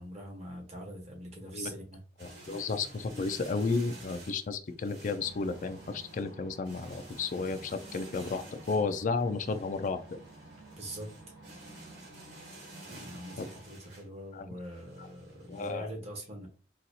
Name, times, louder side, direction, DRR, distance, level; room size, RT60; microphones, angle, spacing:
voice 1, 0.0-2.0 10.8-11.1 12.9-16.5, right 1 dB, 40° right, 1 dB, 1.1 m, -43 dB
voice 2, 2.2-10.2 13.4-13.5 14.3-14.5 15.0-15.1 15.5-15.9, left 4 dB, 45° left, 10 dB, 0.4 m, -33 dB
sound 1, 2.2-15.7, right 1 dB, 90° right, 1.8 m, -51 dB
sound 2, 5.2-13.7, right 2 dB, 70° right, 1.1 m, -52 dB
4.1 x 2.4 x 2.7 m, 0.39 s
head